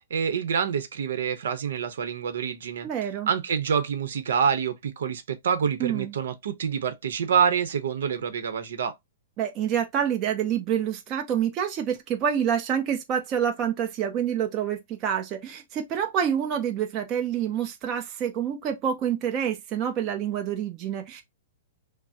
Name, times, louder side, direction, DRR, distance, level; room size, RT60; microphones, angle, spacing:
voice 1, 0.1-8.9, right 7 dB, 70° right, 0.8 m, -27 dB
voice 2, 2.8-3.3 5.8-6.1 9.4-21.2, right 9 dB, 25° right, 0.6 m, -27 dB
5.9 x 2.0 x 2.7 m
hypercardioid pair, 165°, 0 cm